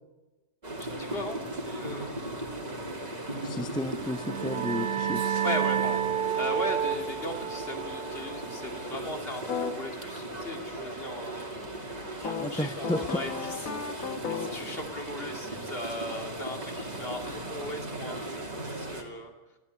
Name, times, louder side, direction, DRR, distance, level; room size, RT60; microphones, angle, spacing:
sound 1, 0.6-19.0, right 1 dB, 30° right, 2.7 m, -38 dB
voice 1, 0.8-2.2 5.4-6.0 6.4-11.5 12.2-13.7 14.3-19.3, left 1 dB, 45° left, 4 dB, 2.9 m, -38 dB
voice 2, 3.4-5.2 12.4-13.0, left 1 dB, 5° left, 10 dB, 0.7 m, -32 dB
sound 2, 3.9-9.3, right 8 dB, 70° right, 1.3 m, -31 dB
sound 3, 9.5-9.7 12.2-14.7, left 6 dB, 85° left, 1.9 m, -34 dB
27.5 x 13.0 x 9.7 m, 1.1 s
omnidirectional pair, 1.4 m